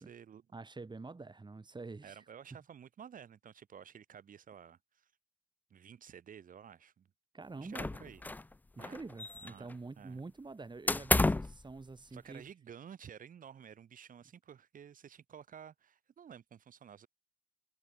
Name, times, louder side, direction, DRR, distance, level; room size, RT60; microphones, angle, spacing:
voice 1, 0.0-0.4 2.0-5.1 5.7-7.1 7.5-8.2 8.8-9.0 9.4-9.7 10.0-10.2 12.1-17.1, right 8 dB, 75° right, 6.9 m, -52 dB
voice 2, 0.5-2.2 7.3-7.9 8.8-12.5, right 3 dB, 35° right, 4.3 m, -46 dB
sound 1, 7.7-8.5 8.8-9.7 10.9-11.6, left 2 dB, 10° left, 0.3 m, -31 dB
cardioid pair, 65°, 14 cm